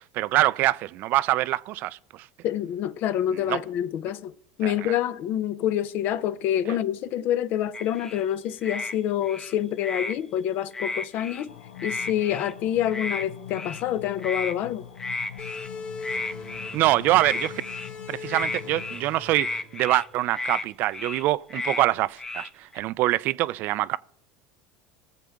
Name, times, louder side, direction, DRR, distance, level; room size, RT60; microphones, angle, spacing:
voice 1, 0.0-2.3 3.3-3.6 4.6-4.9 6.7-6.8 16.7-17.6 18.1-24.0, right 16 dB, 55° right, 0.4 m, -25 dB
voice 2, 2.4-4.3 4.6-11.5 11.8-14.9, left 11 dB, 55° left, 0.6 m, -27 dB
sound 1, 7.7-8.2 8.6-8.9 9.2-10.2 10.7-11.4 11.8-12.5 12.9-13.2 13.5-13.8 14.2-14.5 15.0-15.7 16.0-16.9 17.2-17.9 18.3-19.0 19.3-20.1 20.3-20.6 20.9-21.2 21.5-21.8 22.2-22.8, left 3 dB, 15° left, 0.8 m, -33 dB
sound 2, 11.5-19.0, left 10 dB, 85° left, 0.9 m, -43 dB
sound 3, 15.4-20.6, left 4 dB, 40° left, 3.2 m, -41 dB
19.0 x 7.4 x 3.5 m
hypercardioid pair, 95°, 4 cm